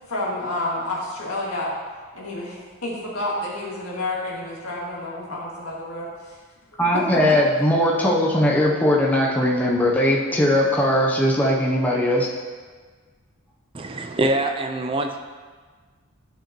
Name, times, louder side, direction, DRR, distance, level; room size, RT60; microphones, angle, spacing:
voice 1, 0.1-1.7 2.1-6.4 6.7-7.4, left 1 dB, 75° left, -5 dB, 2.1 m, -29 dB
voice 2, 6.8-12.3, left 1 dB, 5° left, -4 dB, 0.7 m, -19 dB
voice 3, 13.7-15.2, right 1 dB, 25° right, 4 dB, 0.4 m, -24 dB
11.5 x 5.1 x 3.0 m, 1.5 s
head